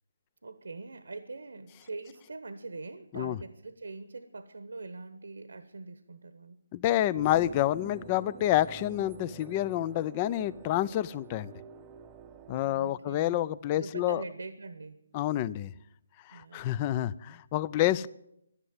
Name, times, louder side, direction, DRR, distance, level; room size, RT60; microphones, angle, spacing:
voice 1, 0.4-6.6 12.6-13.4 13.7-15.0 16.3-16.8, right 3 dB, 85° right, 12 dB, 1.1 m, -43 dB
voice 2, 6.7-11.5 12.5-14.2 15.1-15.7 16.3-18.1, left 13 dB, 25° left, 20 dB, 0.5 m, -28 dB
sound 1, 7.1-12.6, right 7 dB, 20° right, 0.7 m, -48 dB
11.5 x 11.0 x 9.4 m, 0.79 s
hypercardioid pair, 155°, 0 cm